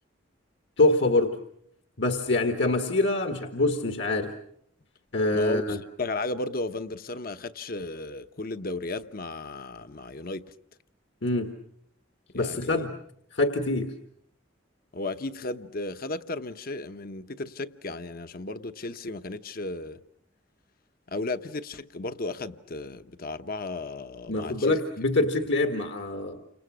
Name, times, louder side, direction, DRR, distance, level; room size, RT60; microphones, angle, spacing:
voice 1, 0.8-1.4 2.0-4.3 5.1-5.8 11.2-11.5 12.3-12.9 13.3-13.9 24.3-26.4, left 2 dB, 65° left, 1.7 m, -25 dB
voice 2, 5.3-10.5 12.3-12.8 14.9-20.0 21.1-24.8, left 2 dB, 50° left, 1.0 m, -34 dB
29.5 x 26.5 x 6.2 m
head